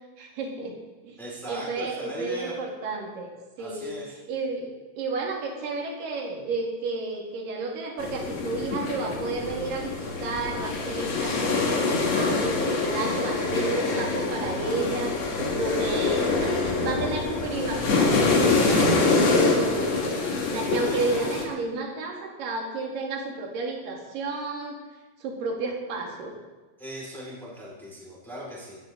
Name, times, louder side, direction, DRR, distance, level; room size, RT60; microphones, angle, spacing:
voice 1, 0.2-0.8 1.0-1.2 1.5-3.3 3.6-4.0 4.3-15.2 15.6-19.9 20.5-24.8 25.2-26.3, right 3 dB, 90° right, 1 dB, 3.7 m, -32 dB
voice 2, 1.2-2.5 3.6-4.1 20.8-21.2 26.8-28.8, equal, ahead, -6 dB, 4.6 m, -39 dB
sound 1, 8.0-21.4, left 3 dB, 50° left, 2.9 m, -25 dB
17.0 x 13.5 x 3.8 m, 1.2 s
omnidirectional pair, 3.8 m